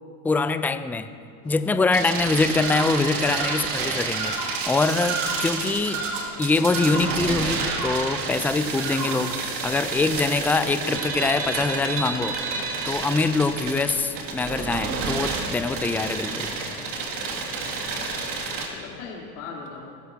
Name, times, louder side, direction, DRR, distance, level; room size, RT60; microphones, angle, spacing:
voice 1, 0.2-1.1 1.4-6.0 6.4-12.4 12.8-16.5, left 3 dB, 5° left, 11 dB, 0.5 m, -24 dB
sound 1, 1.4-19.0, left 8 dB, 60° left, 1.3 m, -43 dB
sound 2, 1.9-18.7, right 5 dB, 50° right, 2.6 m, -30 dB
Bird vocalization bird call bird song, 2.6-3.7 4.1-4.6 5.0-5.5 5.8-6.3 6.7-7.2 7.6-8.1 8.7-9.3, right 3 dB, 65° right, 4.3 m, -32 dB
voice 2, 13.5-13.9 18.1-18.4 18.7-19.9, left 5 dB, 75° left, -3 dB, 3.8 m, -40 dB
21.0 x 16.0 x 2.9 m, 2.4 s
hypercardioid pair, 90°, 45 cm